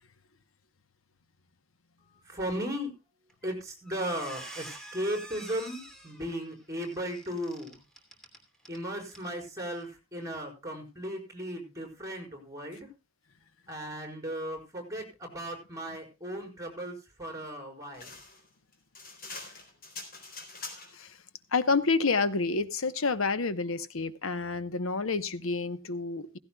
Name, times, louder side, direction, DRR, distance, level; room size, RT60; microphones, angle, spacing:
voice 1, 2.2-2.9 3.4-7.8 8.7-12.9 13.7-18.1, equal, 15° right, 5.1 m, -36 dB
Squeak, 3.3-3.5 3.8-8.8 9.1-9.3 9.7-9.8, right 1 dB, 5° left, 2.8 m, -47 dB
sound 1, 17.9-21.1, left 3 dB, 45° left, 4.0 m, -44 dB
voice 2, 21.5-26.4, left 4 dB, 85° left, 1.0 m, -29 dB
16.0 x 16.0 x 2.3 m
head